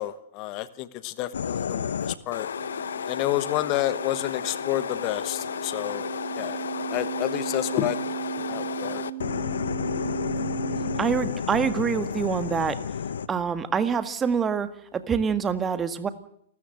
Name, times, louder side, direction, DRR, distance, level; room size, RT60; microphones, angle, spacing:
voice 1, 0.0-2.5 3.0-6.1 6.4-6.6 6.9-9.0, left 15 dB, 40° left, 14 dB, 1.2 m, -30 dB
sound 1, 1.3-13.3, left 7 dB, 75° left, 0.9 m, -32 dB
sound 2, 2.6-11.0, right 11 dB, 65° right, 5.1 m, -37 dB
voice 2, 11.0-12.8 13.3-16.1, right 6 dB, 20° right, 11 dB, 1.7 m, -26 dB
29.5 x 13.5 x 7.9 m, 0.70 s
hypercardioid pair, 115°, 0 cm